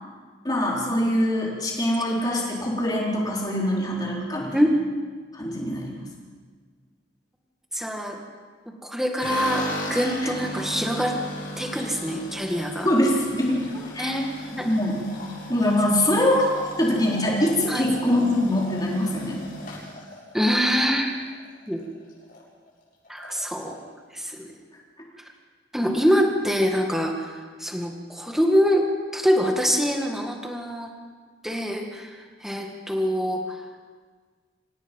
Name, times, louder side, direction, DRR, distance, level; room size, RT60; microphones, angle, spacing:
voice 1, 0.4-4.5 5.3-6.0 10.2-10.3 12.8-13.7 13.9-14.2 14.6-15.0 15.5-16.5 16.8-19.4, left 1 dB, 20° left, -3 dB, 4.4 m, -23 dB
voice 2, 7.7-8.2 8.8-11.2 11.6-12.9 14.0-14.7 17.7-17.9 20.3-21.3 21.7-21.9 23.1-23.8 24.1-24.5 25.7-28.9 29.1-30.9 31.4-33.7, equal, ahead, 1 dB, 2.1 m, -25 dB
sound 1, 9.2-21.4 21.8-22.4 22.7-22.8 23.0-23.8, left 1 dB, 45° left, 7.2 m, -36 dB
26.5 x 18.0 x 5.5 m, 1.5 s
head